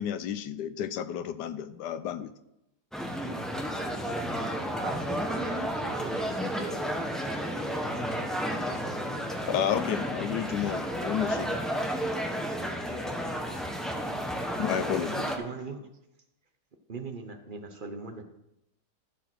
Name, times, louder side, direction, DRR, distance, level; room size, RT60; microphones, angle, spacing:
voice 1, 0.0-2.3 9.5-11.6 14.6-15.3, left 9 dB, 85° left, 12 dB, 1.3 m, -31 dB
sound 1, 2.9-15.4, equal, ahead, 0.9 m, -32 dB
voice 2, 4.8-7.7, right 6 dB, 75° right, 7 dB, 1.6 m, -42 dB
voice 3, 15.4-15.8 16.9-18.2, right 4 dB, 35° right, 6 dB, 0.9 m, -39 dB
14.0 x 5.1 x 6.2 m, 0.85 s
omnidirectional pair, 1.8 m